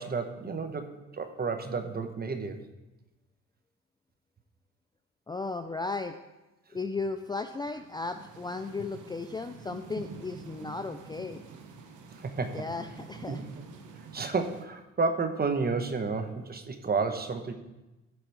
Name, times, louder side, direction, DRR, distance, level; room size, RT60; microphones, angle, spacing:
voice 1, 0.0-2.6 12.2-12.6 13.3-13.4 14.1-17.5, right 4 dB, 30° right, 7 dB, 1.0 m, -31 dB
voice 2, 5.3-6.2 6.7-11.4 12.5-13.4, left 3 dB, 15° left, 8 dB, 0.4 m, -35 dB
sound 1, 7.8-14.6, right 5 dB, 80° right, 1.1 m, -47 dB
13.0 x 4.8 x 4.7 m, 1.0 s
cardioid pair, 90°, 30 cm